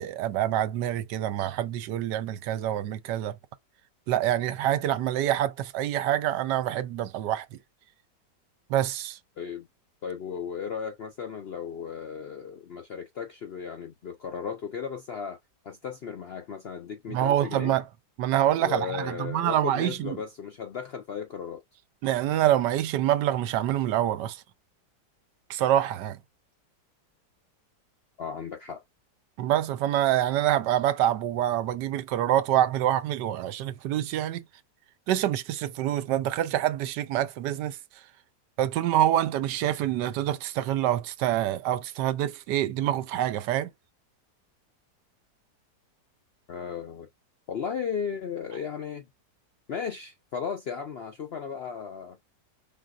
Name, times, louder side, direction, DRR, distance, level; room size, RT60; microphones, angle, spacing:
voice 1, 0.0-3.4 4.1-7.5 8.7-9.2 17.1-17.9 18.2-20.2 22.0-24.4 25.5-26.2 29.4-34.4 35.1-37.8 38.6-43.7, right 12 dB, 90° right, 1.3 m, -26 dB
voice 2, 9.4-9.7 10.0-15.4 15.6-17.8 18.6-21.6 28.2-28.8 46.5-47.1 47.5-49.1 49.7-52.2, left 7 dB, 70° left, 0.6 m, -35 dB
5.2 x 3.6 x 2.3 m
omnidirectional pair, 1.8 m